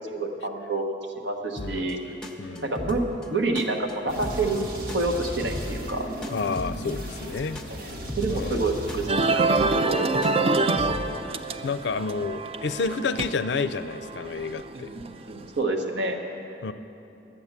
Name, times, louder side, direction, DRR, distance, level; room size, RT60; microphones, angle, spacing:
voice 1, 0.1-2.0 2.6-4.6 4.9-6.1 7.7-9.5 9.7-10.9 14.7-16.2, right 2 dB, 75° right, 3 dB, 1.2 m, -28 dB
voice 2, 1.6-1.9 2.4-2.7 6.3-7.6 8.3-8.7 11.6-14.9 16.6-16.7, left 4 dB, 70° left, 13 dB, 0.4 m, -30 dB
sound 1, 1.6-11.4, left 1 dB, 5° left, 0.8 m, -39 dB
sound 2, 4.1-9.1, equal, 50° right, 1.1 m, -36 dB
sound 3, 9.1-15.4, right 3 dB, 30° right, 0.4 m, -26 dB
11.0 x 8.6 x 7.2 m, 2.9 s
head